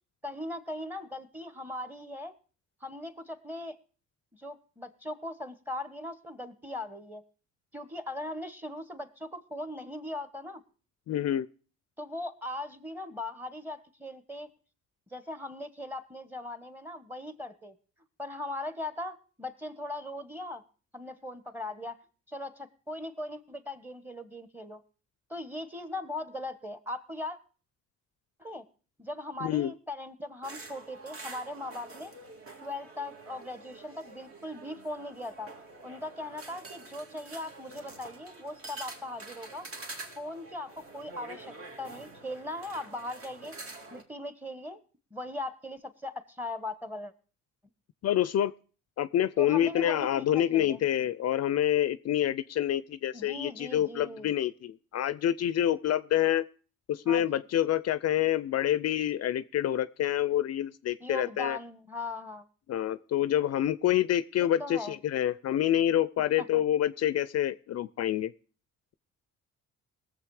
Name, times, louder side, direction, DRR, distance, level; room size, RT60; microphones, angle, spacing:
voice 1, 0.2-2.3 2.8-3.8 4.3-7.2 7.7-10.6 12.0-14.5 15.1-17.8 18.2-20.6 20.9-22.0 22.3-24.8 25.3-27.4 28.4-28.6 29.0-32.1 32.6-35.5 35.8-39.7 40.1-43.6 43.9-44.8 45.1-47.1 49.4-50.8 53.1-54.3 57.1-57.4 61.0-62.4 64.4-65.0 66.4-66.6, left 1 dB, 5° right, 1.3 m, -39 dB
voice 2, 11.1-11.5 29.4-29.7 48.0-48.5 49.0-56.4 56.9-61.6 62.7-68.3, left 11 dB, 55° left, 0.5 m, -27 dB
sound 1, 30.4-44.0, right 3 dB, 45° right, 2.4 m, -47 dB
19.5 x 7.3 x 4.8 m
cardioid pair, 90°, 30 cm